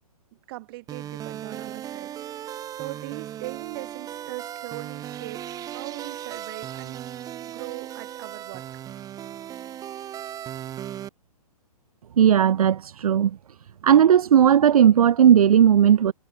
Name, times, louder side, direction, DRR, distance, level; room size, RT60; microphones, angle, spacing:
voice 1, 0.3-7.0 7.4-8.7, right 21 dB, 40° right, 2.8 m, -40 dB
sound 1, 0.9-11.1, right 11 dB, 20° right, 2.1 m, -37 dB
voice 2, 12.2-13.4 13.8-16.1, right 9 dB, 70° right, 0.7 m, -16 dB
hypercardioid pair, 130°, 19 cm